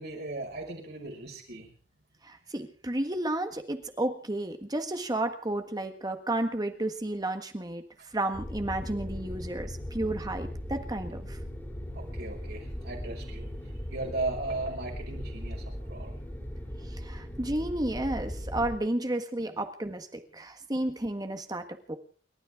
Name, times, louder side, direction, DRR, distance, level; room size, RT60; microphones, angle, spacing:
voice 1, 0.0-1.7 11.9-16.1, right 2 dB, 60° right, 2 dB, 5.5 m, -37 dB
voice 2, 2.2-7.8 8.1-11.4 17.0-22.0, right 1 dB, 20° right, 7 dB, 1.6 m, -32 dB
sound 1, 8.3-18.8, equal, 10° left, 3.1 m, -38 dB
29.5 x 12.5 x 3.7 m, 0.39 s
head